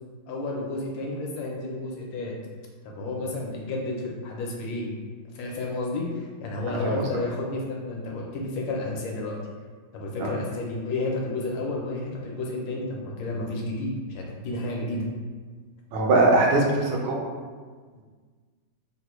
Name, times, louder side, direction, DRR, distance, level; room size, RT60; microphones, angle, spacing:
voice 1, 0.3-2.3 2.8-4.9 5.3-9.3 9.9-15.1, left 2 dB, 75° left, -1 dB, 1.3 m, -31 dB
voice 2, 15.9-17.3, right 2 dB, 90° right, 0 dB, 1.5 m, -21 dB
3.6 x 2.1 x 3.0 m, 1.5 s
omnidirectional pair, 2.2 m